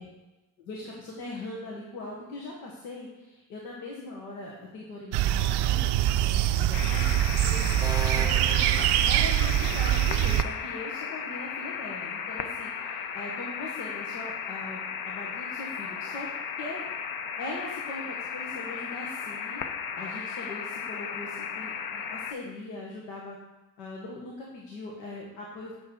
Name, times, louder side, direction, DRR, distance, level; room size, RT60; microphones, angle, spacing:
voice 1, 0.7-8.4 8.7-16.3 16.6-16.8 17.4-19.6 20.0-23.4 23.8-25.7, left 2 dB, 75° left, -3 dB, 1.2 m, -41 dB
sound 1, 5.1-10.4, right 13 dB, 55° right, 0.5 m, -24 dB
sound 2, 6.7-22.3, left 6 dB, 45° left, 0.7 m, -35 dB
sound 3, 7.8-9.7, right 2 dB, 10° right, 0.6 m, -38 dB
7.6 x 5.6 x 3.7 m, 1.1 s
hypercardioid pair, 50°, 48 cm